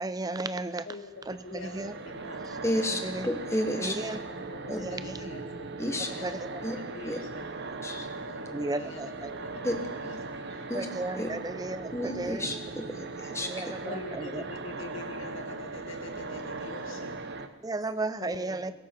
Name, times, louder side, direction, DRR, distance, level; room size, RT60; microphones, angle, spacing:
voice 1, 0.0-0.9 1.3-1.9 3.0-3.3 3.8-4.2 4.7-5.3 6.1-6.6 8.5-9.3 10.7-12.6 13.4-14.4 17.6-18.7, right 2 dB, 15° right, 13 dB, 0.4 m, -34 dB
voice 2, 0.9-2.6 3.7-7.5 8.3-10.7 13.8-17.2 18.2-18.7, left 2 dB, 60° left, 3 dB, 2.1 m, -44 dB
sound 1, 1.1-17.5, right 3 dB, 50° right, 0.8 m, -39 dB
voice 3, 2.6-3.9 4.7-4.8 5.8-6.1 6.6-6.8 7.0-7.2 7.8-8.1 9.6-9.8 10.7-10.9 11.2-11.3 11.9-13.7, left 1 dB, 10° left, 5 dB, 1.1 m, -31 dB
21.5 x 12.5 x 4.4 m, 1.3 s
head